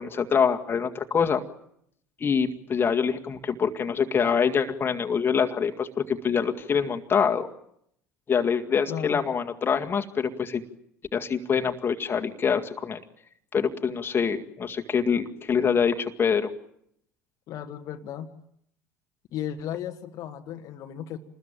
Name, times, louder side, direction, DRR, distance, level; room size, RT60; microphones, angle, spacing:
voice 1, 0.0-1.4 2.2-7.5 8.3-10.6 11.1-13.0 13.5-16.5, left 6 dB, 25° left, 5 dB, 2.0 m, -25 dB
voice 2, 8.9-9.2 17.5-18.3 19.3-21.2, left 10 dB, 45° left, 4 dB, 1.6 m, -35 dB
28.0 x 20.5 x 9.0 m, 0.74 s
figure-of-eight pair, 65°, 8 cm